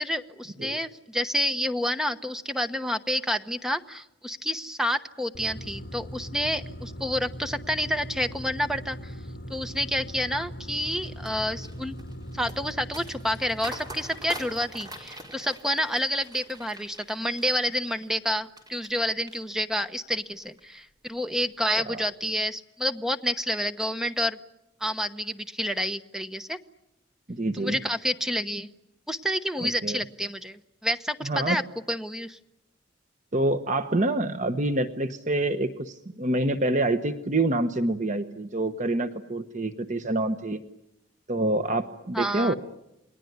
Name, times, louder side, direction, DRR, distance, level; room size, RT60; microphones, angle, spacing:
voice 1, 0.0-9.2 9.5-12.0 12.3-24.4 24.8-26.6 27.6-28.7 29.1-31.6 31.9-32.4 42.1-42.5, equal, 5° right, 9 dB, 1.0 m, -29 dB
sound 1, 5.3-15.1, equal, 50° left, 2.7 m, -40 dB
sound 2, 10.7-19.0 19.3-19.9 20.3-20.6, right 1 dB, 20° right, 4.5 m, -44 dB
voice 2, 27.3-27.8 29.6-30.0 31.2-31.6 33.3-40.6 41.3-42.5, right 2 dB, 40° right, 9 dB, 1.1 m, -27 dB
29.0 x 21.0 x 9.5 m, 0.88 s
head